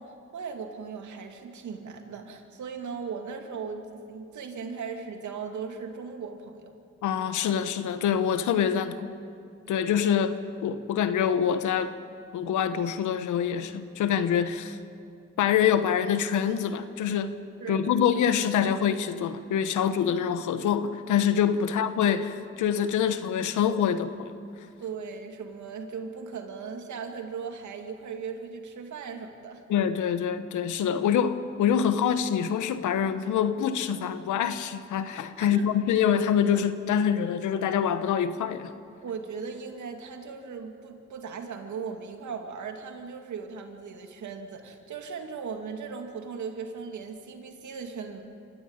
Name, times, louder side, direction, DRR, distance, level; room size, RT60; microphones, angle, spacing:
voice 1, 0.0-6.8 17.6-18.0 24.8-29.6 35.4-35.6 39.0-48.2, right 5 dB, 80° right, 4 dB, 2.5 m, -38 dB
voice 2, 7.0-9.1 9.7-11.9 12.3-14.8 15.4-17.3 17.7-24.3 29.7-38.7, left 8 dB, 90° left, 11 dB, 1.2 m, -25 dB
25.5 x 14.5 x 8.9 m, 2.4 s
supercardioid pair, 50°, 29 cm